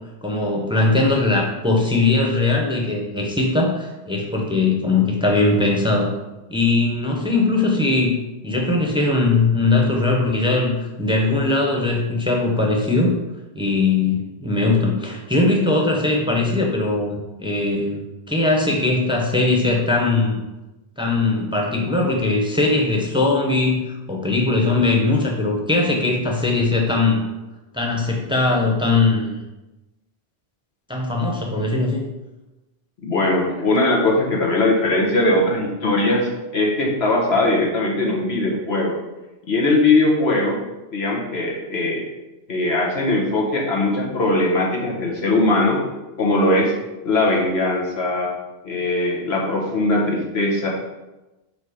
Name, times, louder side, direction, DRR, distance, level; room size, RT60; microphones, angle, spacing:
voice 1, 0.2-6.1 6.5-8.2 8.4-13.1 13.5-18.0 18.3-20.4 21.0-27.3 27.7-29.4 30.9-32.0, left 3 dB, 5° right, 0 dB, 0.8 m, -20 dB
voice 2, 33.0-39.0 39.5-40.6 40.9-42.0 42.5-45.8 46.2-46.7 47.0-48.3 48.6-50.7, left 2 dB, 85° left, -2 dB, 1.5 m, -20 dB
4.9 x 4.4 x 5.0 m, 1.1 s
omnidirectional pair, 1.0 m